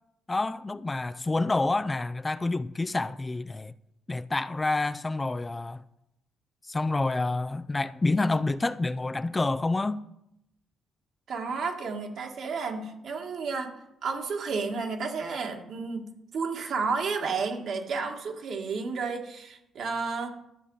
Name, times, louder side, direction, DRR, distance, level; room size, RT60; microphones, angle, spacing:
voice 1, 0.3-3.7 4.1-5.8 6.6-10.0, left 2 dB, 20° left, 0.4 m, -28 dB
voice 2, 11.3-13.8 14.0-20.3, right 4 dB, 65° right, 1.8 m, -32 dB
12.0 x 6.9 x 5.5 m
cardioid pair, 90°, 0 cm